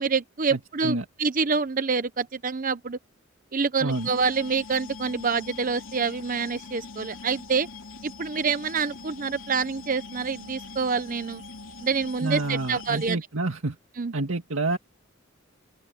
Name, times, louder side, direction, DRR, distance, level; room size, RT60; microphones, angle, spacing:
voice 1, 0.0-3.0 3.5-7.7 8.0-11.4 11.8-13.2 14.0-14.1, right 5 dB, 40° right, 0.8 m, -27 dB
voice 2, 0.5-1.0 3.8-4.1 12.2-13.8 14.1-14.8, right 2 dB, 80° right, 2.0 m, -28 dB
sound 1, 3.9-13.2, left 4 dB, 70° left, 2.9 m, -43 dB
open air
head